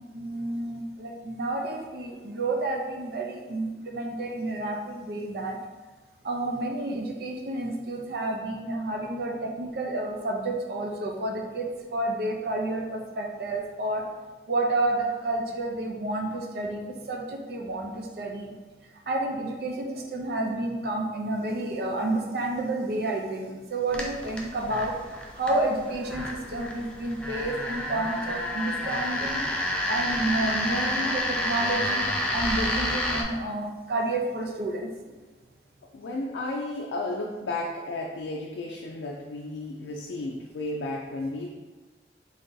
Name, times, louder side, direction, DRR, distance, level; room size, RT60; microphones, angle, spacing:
voice 1, 0.1-5.6 6.2-14.0 14.5-18.5 19.1-24.9 25.3-29.4 29.9-34.9, right 2 dB, 60° right, 1 dB, 0.5 m, -30 dB
sound 1, 23.9-33.2, left 1 dB, 5° left, 0.3 m, -30 dB
voice 2, 35.9-41.5, left 2 dB, 90° left, 0 dB, 0.4 m, -33 dB
3.2 x 2.6 x 3.8 m, 1.3 s
head